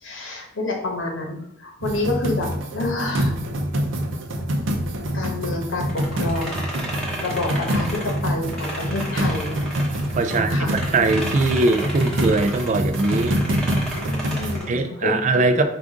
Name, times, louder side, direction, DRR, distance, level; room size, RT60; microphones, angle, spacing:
voice 1, 0.0-2.5 2.7-3.4 5.1-6.7 7.2-9.5 10.3-10.7 14.0-15.6, left 2 dB, 90° left, 0 dB, 1.0 m, -28 dB
sound 1, 1.8-14.6, equal, 85° right, 0.6 m, -26 dB
sound 2, 5.9-10.4 10.7-14.8, right 1 dB, 5° left, 1.0 m, -33 dB
voice 2, 10.1-13.3 14.7-15.6, right 3 dB, 40° right, 9 dB, 0.4 m, -21 dB
4.9 x 2.4 x 3.6 m, 0.74 s
head